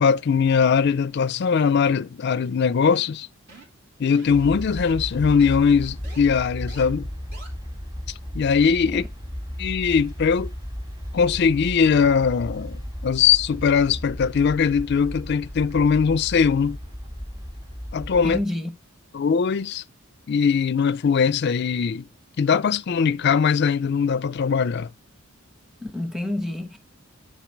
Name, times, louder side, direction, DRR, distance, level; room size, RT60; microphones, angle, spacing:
voice 1, 0.0-3.3 4.0-7.1 8.3-9.0 9.6-10.5 11.1-16.8 17.9-18.4 19.1-19.8 20.3-22.0 22.4-24.9, left 6 dB, 50° left, 0.4 m, -20 dB
sound 1, 2.8-3.2 3.5-3.8 4.1-4.4 4.8-4.9 5.4-5.6 6.0-6.2 6.7-6.8 7.3-7.5, right 2 dB, 50° right, 2.9 m, -45 dB
sound 2, 4.3-18.4, equal, 20° right, 2.8 m, -35 dB
voice 2, 18.2-18.8 25.8-26.8, left 1 dB, ahead, 1.0 m, -29 dB
9.1 x 4.5 x 4.5 m
head